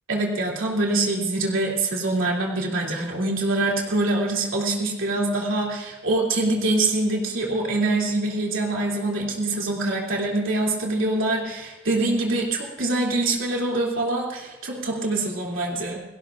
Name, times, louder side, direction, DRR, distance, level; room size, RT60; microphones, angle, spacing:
voice 1, 0.1-16.0, right 2 dB, 85° right, -2 dB, 3.0 m, -24 dB
29.5 x 17.5 x 2.6 m, 1.1 s
head